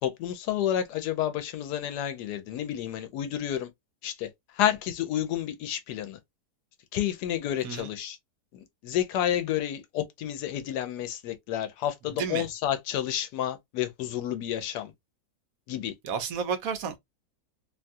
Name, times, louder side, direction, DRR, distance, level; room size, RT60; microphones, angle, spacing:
voice 1, 0.0-3.7 4.0-6.2 6.9-8.2 8.8-14.9 15.7-15.9, left 11 dB, 85° left, 1.2 m, -30 dB
voice 2, 16.0-17.0, right 6 dB, 70° right, 1.0 m, -31 dB
2.9 x 2.3 x 2.5 m
omnidirectional pair, 1.7 m